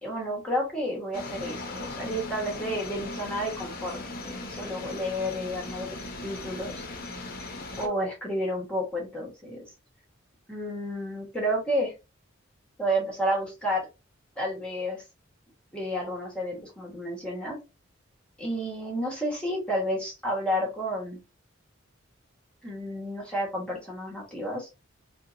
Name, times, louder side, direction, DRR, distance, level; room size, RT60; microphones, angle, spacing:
voice 1, 0.0-6.0 6.2-6.7 7.8-9.6 10.5-11.9 12.8-13.9 14.4-15.0 15.7-17.6 18.4-21.2 22.6-24.7, equal, 5° left, -2 dB, 1.2 m, -31 dB
sound 1, 1.1-7.9, left 2 dB, 50° left, 0.8 m, -38 dB
2.7 x 2.3 x 3.7 m, 0.27 s
head